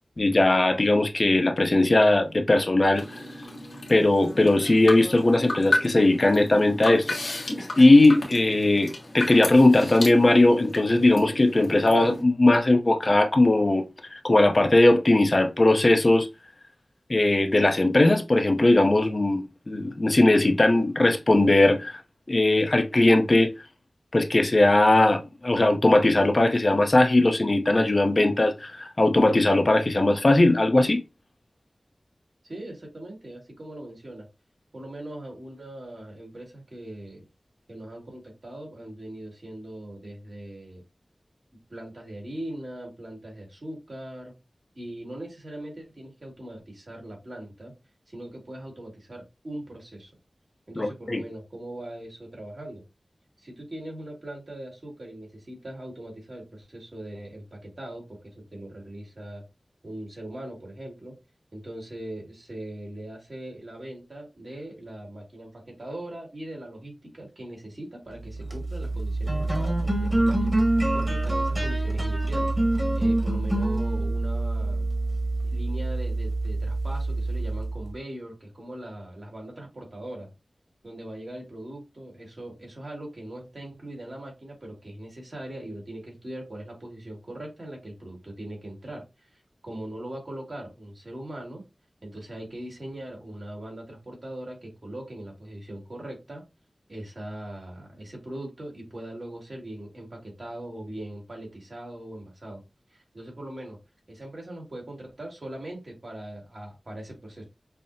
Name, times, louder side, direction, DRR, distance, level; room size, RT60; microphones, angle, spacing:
voice 1, 0.2-3.0 3.9-7.2 7.8-13.9 14.1-16.3 17.1-22.0 22.3-23.5 24.1-31.0 50.8-51.2, left 2 dB, 50° left, 0.5 m, -19 dB
sound 1, 2.9-12.2, left 2 dB, 80° left, 1.0 m, -33 dB
voice 2, 32.4-34.3 34.7-37.3 37.7-40.8 41.7-44.4 44.8-47.7 48.1-50.1 50.7-52.8 53.4-59.4 59.8-61.1 61.5-72.5 73.0-74.9 75.4-80.3 80.8-89.0 89.3-91.6 92.0-96.4 96.9-102.6 102.9-103.8 104.1-107.4, right 1 dB, 65° right, 1.8 m, -40 dB
sound 2, 68.3-77.9, right 2 dB, 20° right, 1.2 m, -26 dB
5.5 x 2.0 x 2.6 m
wide cardioid pair, 50°, 0 cm